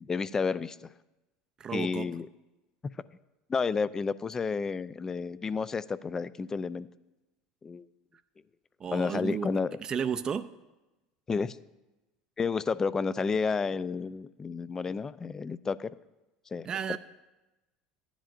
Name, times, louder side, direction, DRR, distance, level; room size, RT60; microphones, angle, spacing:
voice 1, 0.0-0.9 1.7-2.3 3.5-6.9 7.6-7.9 8.9-9.8 11.3-11.6 12.4-15.9 16.5-17.0, left 5 dB, 25° left, 17 dB, 0.4 m, -31 dB
voice 2, 1.6-2.1 8.8-9.5 9.8-10.5 16.6-17.0, right 7 dB, 35° right, 10 dB, 0.5 m, -32 dB
15.0 x 10.0 x 2.6 m, 1.0 s
hypercardioid pair, 90°, 2 cm